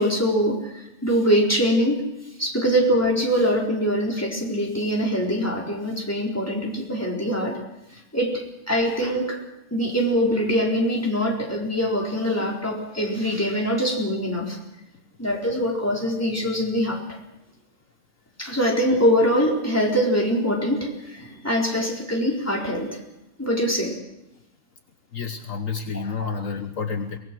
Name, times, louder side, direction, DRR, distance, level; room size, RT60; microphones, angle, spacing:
voice 1, 0.0-2.0 2.4-7.6 8.1-9.4 9.7-14.6 15.2-17.0 18.4-23.0 23.4-23.9 25.9-26.3, equal, 10° left, -1 dB, 4.2 m, -23 dB
voice 2, 25.1-27.2, left 5 dB, 65° left, 7 dB, 1.5 m, -29 dB
23.0 x 19.5 x 6.2 m, 0.88 s
omnidirectional pair, 1.5 m